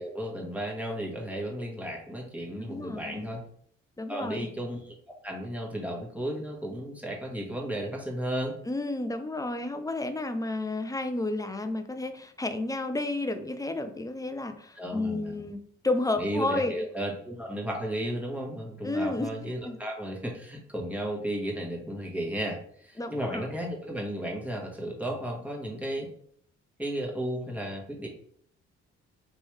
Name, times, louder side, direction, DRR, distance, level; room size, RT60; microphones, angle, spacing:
voice 1, 0.0-3.4 4.1-8.6 14.7-15.4 16.2-26.1 26.8-28.1, right 1 dB, 5° right, -2 dB, 1.3 m, -34 dB
voice 2, 2.6-3.3 4.0-4.5 8.7-16.8 18.8-19.3 19.6-19.8 23.0-23.4, left 2 dB, 10° left, 8 dB, 0.5 m, -31 dB
3.3 x 3.0 x 3.1 m, 0.62 s
hypercardioid pair, 50°, 32 cm